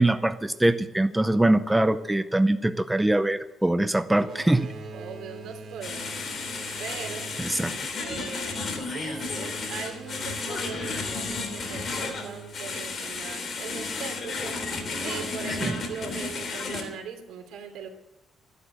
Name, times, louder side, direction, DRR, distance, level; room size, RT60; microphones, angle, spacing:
voice 1, 0.0-4.7 7.4-7.7 15.6-15.8, right 1 dB, 5° right, 11 dB, 0.5 m, -23 dB
Boat Water vehicle, 4.0-13.5 14.3-15.9, right 4 dB, 50° right, 3.1 m, -44 dB
voice 2, 4.9-6.2 6.8-7.4 8.0-17.9, right 6 dB, 90° right, 5 dB, 3.0 m, -40 dB
sound 1, 5.8-16.8, left 4 dB, 40° left, 3.2 m, -33 dB
14.0 x 11.5 x 7.7 m, 0.95 s
cardioid pair, 140°, 0 cm